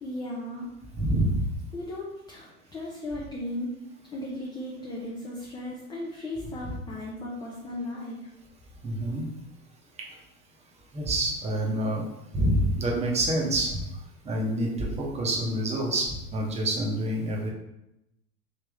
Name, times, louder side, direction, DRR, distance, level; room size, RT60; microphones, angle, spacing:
voice 1, 0.0-0.7 1.7-3.8 4.1-8.3, left 1 dB, 10° left, -4 dB, 0.4 m, -36 dB
voice 2, 1.0-1.4 8.8-9.3 10.9-12.0 12.3-13.8 14.2-17.5, right 1 dB, 15° right, -2 dB, 0.8 m, -27 dB
3.4 x 2.9 x 3.4 m, 0.86 s
hypercardioid pair, 95°, 44 cm